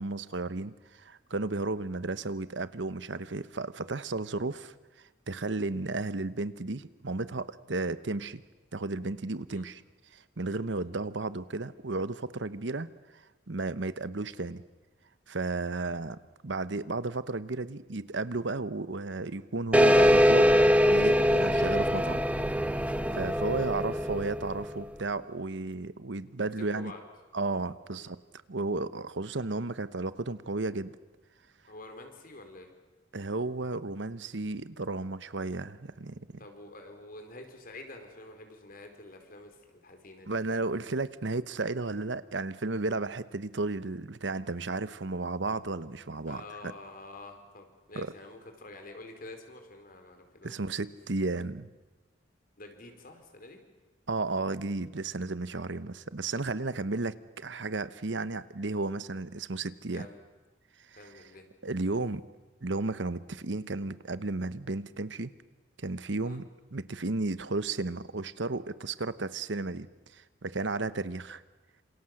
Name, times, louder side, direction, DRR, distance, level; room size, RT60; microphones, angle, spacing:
voice 1, 0.0-4.7 5.3-8.4 8.7-9.8 10.1-14.6 15.3-16.2 16.4-20.5 20.8-22.2 23.1-26.9 27.3-28.2 28.5-30.9 33.1-36.3 40.3-46.7 47.9-48.1 50.4-51.7 54.1-60.1 60.9-61.2 61.6-62.2 62.6-65.3 65.8-69.9 70.1-71.4, right 3 dB, 75° right, 14 dB, 1.0 m, -33 dB
sound 1, 19.7-24.8, equal, 10° right, 0.8 m, -23 dB
voice 2, 23.1-23.7 26.7-27.0 28.0-28.1 31.7-32.7 36.4-40.4 46.3-50.8 52.6-53.6 59.9-60.2 61.0-61.5 66.2-66.4, left 2 dB, 50° left, 5 dB, 4.6 m, -48 dB
27.5 x 27.5 x 7.8 m, 1.2 s
head